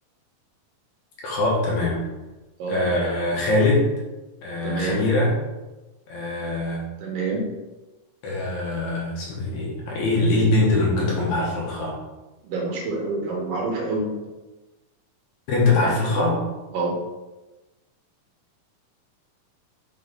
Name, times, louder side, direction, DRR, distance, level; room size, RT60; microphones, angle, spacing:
voice 1, 1.2-2.1 2.7-3.9 4.4-5.3 6.1-6.9 8.2-12.0 15.5-16.4, left 2 dB, 65° left, -4 dB, 2.4 m, -22 dB
voice 2, 4.6-5.1 7.0-7.4 12.4-14.1 15.8-15.9 16.7-17.0, right 3 dB, 80° right, -1 dB, 2.8 m, -27 dB
6.2 x 4.1 x 3.8 m, 1.1 s
omnidirectional pair, 3.9 m